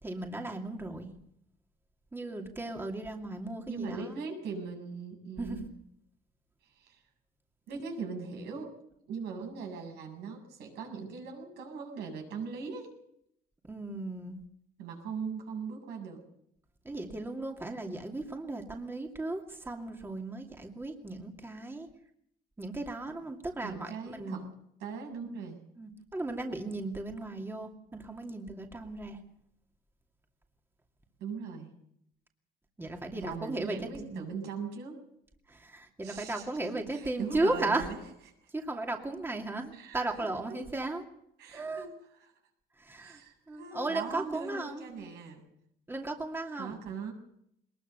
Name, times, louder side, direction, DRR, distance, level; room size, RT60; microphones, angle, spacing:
voice 1, 0.0-1.1 2.1-4.1 5.4-5.7 13.6-14.4 16.8-21.9 22.6-24.5 25.1-25.3 25.8-29.2 32.8-34.2 35.5-37.9 38.5-41.0 41.5-41.9 42.8-43.2 43.5-45.1 45.9-46.8, right 2 dB, 15° right, 2 dB, 2.5 m, -36 dB
voice 2, 3.7-5.7 6.7-7.0 7.7-8.8 9.1-13.0 14.8-16.3 23.6-24.5 24.8-25.6 31.2-31.7 33.2-35.0 36.0-38.0 38.4-38.5 39.7-40.6 41.4-42.3 43.0-45.4 46.6-47.1, right 5 dB, 80° right, 3 dB, 7.6 m, -40 dB
21.5 x 20.5 x 6.9 m, 0.73 s
cardioid pair, 110°, 17 cm